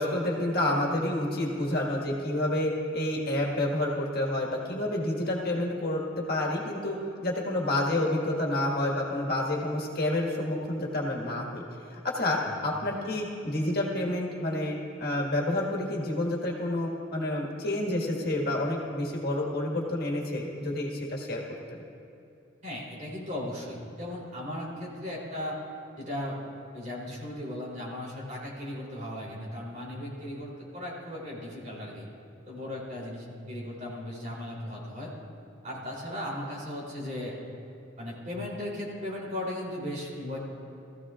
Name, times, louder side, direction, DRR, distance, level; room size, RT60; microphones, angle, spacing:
voice 1, 0.0-6.0 6.3-11.6 11.9-21.4 21.7-21.8, left 1 dB, 50° left, -2 dB, 1.8 m, -29 dB
voice 2, 22.6-25.6 26.0-26.4 26.7-32.1 32.4-35.1 35.6-37.4 38.0-40.4, left 1 dB, 40° right, -4 dB, 3.5 m, -37 dB
20.0 x 15.0 x 2.5 m, 2.8 s
head